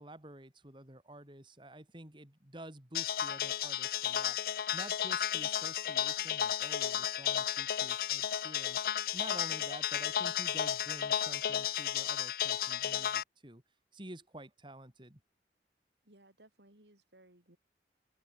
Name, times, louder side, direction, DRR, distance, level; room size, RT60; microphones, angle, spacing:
voice 1, 0.0-8.8 9.1-13.6 13.9-15.2, right 1 dB, 25° right, 3.3 m, -50 dB
sound 1, 2.9-13.2, left 10 dB, 55° left, 0.4 m, -33 dB
voice 2, 16.0-17.6, right 1 dB, 80° right, 5.4 m, -61 dB
head